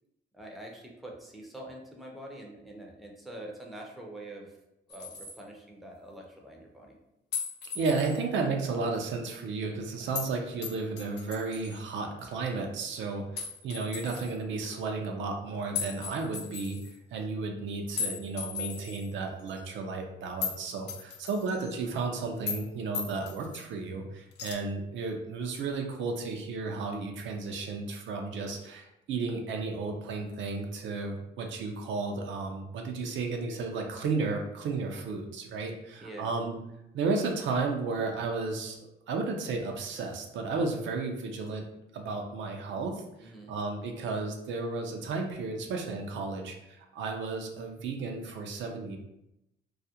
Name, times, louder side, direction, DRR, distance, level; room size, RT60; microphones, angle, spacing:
voice 1, 0.3-4.6 4.9-7.0 36.0-36.3 43.2-43.5, right 1 dB, ahead, -1 dB, 0.5 m, -45 dB
sound 1, 4.9-5.4 7.3-8.2 10.1-10.3 10.6-11.8 13.4-14.3 15.7-17.0 18.0-19.1 19.5-19.6 20.4-20.6 20.9-21.7 22.5-22.7 22.9-23.6 24.4-24.5, left 6 dB, 60° left, 0.4 m, -37 dB
voice 2, 7.7-16.8 17.1-36.6 36.9-41.7 41.9-49.0, right 4 dB, 70° right, 2 dB, 0.4 m, -33 dB
2.4 x 2.0 x 2.7 m, 0.86 s
cardioid pair, 90°, 20 cm